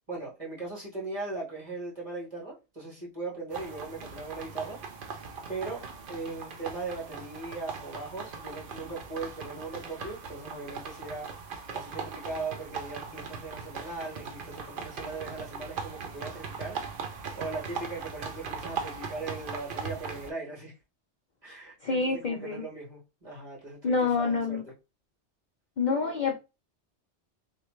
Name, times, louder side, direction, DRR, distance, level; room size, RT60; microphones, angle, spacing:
voice 1, 0.1-4.8 5.5-11.3 11.7-20.7 21.4-24.6, right 3 dB, 30° right, 1.6 m, -39 dB
sound 1, 3.5-20.3, right 5 dB, 55° right, 0.8 m, -39 dB
voice 2, 21.8-22.6 23.8-24.6 25.8-26.4, left 4 dB, 55° left, 0.6 m, -27 dB
3.2 x 2.5 x 3.1 m
omnidirectional pair, 1.1 m